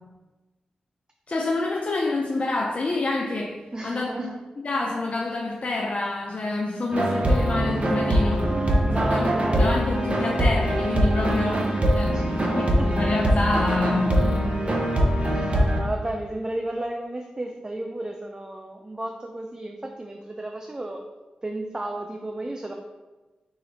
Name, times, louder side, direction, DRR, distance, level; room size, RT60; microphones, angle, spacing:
voice 1, 1.3-3.6 3.8-8.5 8.9-9.3 9.6-14.4, left 2 dB, 50° left, 0 dB, 0.5 m, -27 dB
voice 2, 3.7-4.4 8.9-9.7 12.1-12.9 15.2-21.0 21.4-22.7, right 1 dB, 25° right, 2 dB, 0.5 m, -33 dB
sound 1, 6.9-15.8, right 1 dB, 45° right, 0.9 m, -22 dB
4.9 x 2.7 x 4.0 m, 1.2 s
cardioid pair, 40°, 3 cm